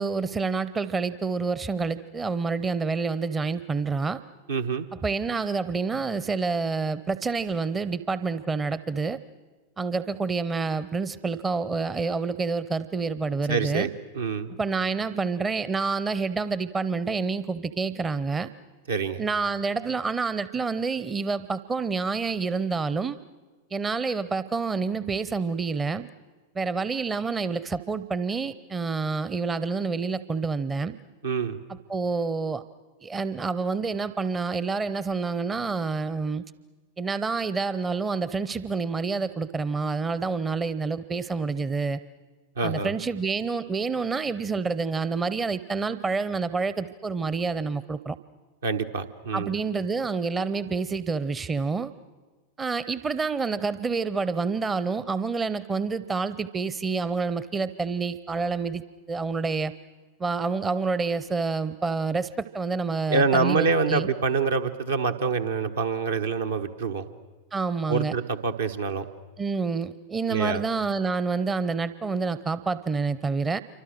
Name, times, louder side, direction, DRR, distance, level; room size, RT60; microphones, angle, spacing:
voice 1, 0.0-4.2 5.0-9.2 9.8-13.9 14.6-18.5 19.2-23.2 23.7-26.1 26.5-31.0 31.9-32.6 33.0-36.4 37.0-42.0 42.6-48.2 49.3-51.9 52.6-58.8 59.1-59.7 60.2-64.1 67.5-68.1 69.4-73.6, right 4 dB, 15° right, 15 dB, 0.7 m, -28 dB
voice 2, 4.5-4.9 13.5-13.9 14.1-14.5 18.9-19.2 31.2-31.6 42.6-42.9 48.6-49.6 63.1-67.1 67.9-69.1 70.3-70.6, right 4 dB, 70° right, 5 dB, 1.4 m, -26 dB
27.5 x 25.0 x 6.5 m, 1.3 s
figure-of-eight pair, 90°, 0 cm